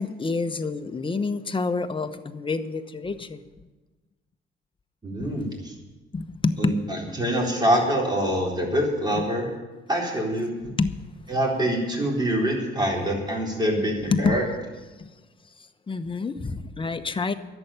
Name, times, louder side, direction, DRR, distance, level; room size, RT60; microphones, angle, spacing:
voice 1, 0.0-3.5 5.2-5.4 6.1-6.8 9.1-9.2 10.8-11.0 14.1-14.4 15.0-15.1 15.6-17.3, left 4 dB, 25° left, 9 dB, 1.0 m, -28 dB
voice 2, 5.0-5.7 6.6-9.5 9.9-10.5 11.3-14.4, right 1 dB, 20° right, -2 dB, 3.9 m, -25 dB
11.0 x 8.1 x 10.0 m, 1.2 s
cardioid pair, 90°, 20 cm